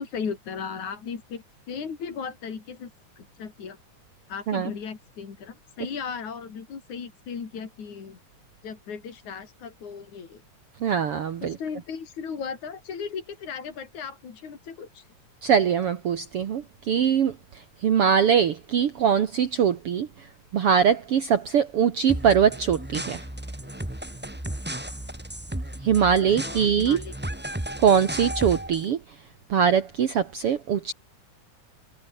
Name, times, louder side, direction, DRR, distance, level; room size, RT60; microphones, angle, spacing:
voice 1, 0.0-2.9 3.2-3.8 4.3-8.2 8.6-10.4 11.4-15.1 26.3-27.1, left 6 dB, 70° left, 4.9 m, -36 dB
voice 2, 10.8-11.6 15.4-17.3 17.8-20.1 20.5-23.2 25.8-27.0 27.8-29.0 29.5-30.9, right 8 dB, 55° right, 2.1 m, -22 dB
sound 1, 22.1-28.9, right 1 dB, 5° right, 1.0 m, -34 dB
omnidirectional pair, 3.5 m